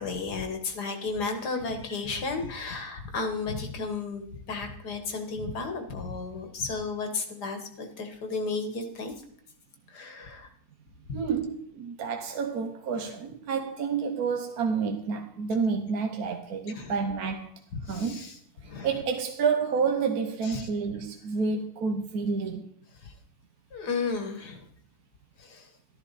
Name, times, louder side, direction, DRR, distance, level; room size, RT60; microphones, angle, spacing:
voice 1, 0.0-9.1 9.9-10.5 11.1-11.2 12.9-13.1 16.7-16.9 17.8-18.4 18.6-18.9 20.4-20.7 23.0-23.1 23.7-24.7 25.4-25.7, left 4 dB, 70° left, 2.1 m, -33 dB
voice 2, 11.1-17.5 17.9-18.2 18.6-22.7, right 5 dB, 65° right, 1.4 m, -29 dB
14.0 x 12.5 x 4.1 m
omnidirectional pair, 1.8 m